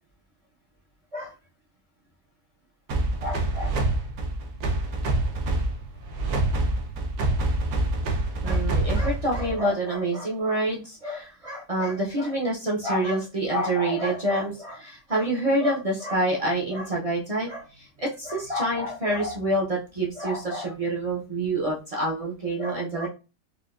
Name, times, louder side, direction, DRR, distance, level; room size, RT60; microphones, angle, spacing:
sound 1, 2.9-9.7, right 2 dB, 75° right, 1.2 m, -26 dB
voice 1, 3.2-3.7 8.4-23.1, right 1 dB, 55° right, -4 dB, 0.4 m, -27 dB
4.8 x 2.2 x 2.4 m, 0.30 s
omnidirectional pair, 1.8 m